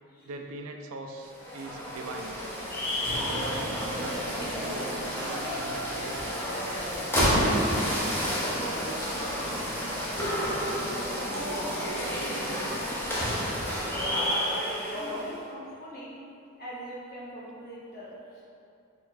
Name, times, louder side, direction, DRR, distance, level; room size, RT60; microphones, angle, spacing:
voice 1, 0.3-2.4 3.1-6.4, right 2 dB, 65° right, 3 dB, 0.4 m, -41 dB
sound 1, 1.2-15.3, equal, 10° left, 0.7 m, -30 dB
voice 2, 8.2-8.8 9.1-10.1 11.1-14.0 14.9-16.2 16.6-18.4, equal, 45° left, -7 dB, 1.0 m, -42 dB
4.3 x 2.4 x 4.0 m, 2.6 s
head